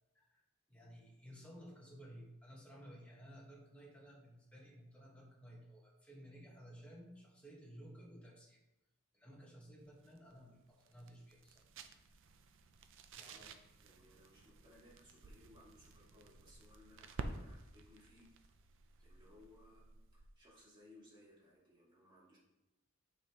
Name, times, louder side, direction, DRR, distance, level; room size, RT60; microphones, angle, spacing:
voice 1, 0.7-8.6 9.1-11.6 13.1-13.6, equal, 5° left, -3 dB, 1.4 m, -56 dB
sound 1, 9.8-20.4, right 3 dB, 60° right, 0.5 m, -53 dB
voice 2, 13.2-13.5 13.8-18.2 19.0-19.9 20.1-22.4, left 1 dB, 20° right, -6 dB, 2.2 m, -63 dB
9.0 x 5.2 x 3.0 m, 0.98 s
head